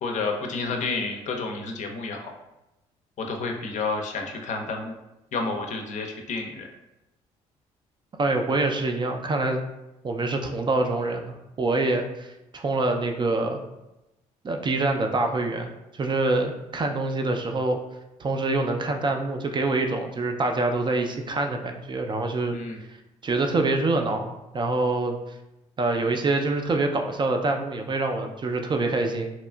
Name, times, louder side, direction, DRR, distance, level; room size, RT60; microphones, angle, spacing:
voice 1, 0.0-2.3 3.2-4.9 5.3-6.7 22.5-22.8, left 3 dB, 55° left, 3 dB, 0.5 m, -30 dB
voice 2, 8.2-9.6 10.0-13.6 14.4-17.8 18.2-22.6 23.2-25.2 25.8-29.3, right 2 dB, 30° right, 4 dB, 0.4 m, -25 dB
2.8 x 2.3 x 2.2 m, 0.94 s
hypercardioid pair, 55°, 15 cm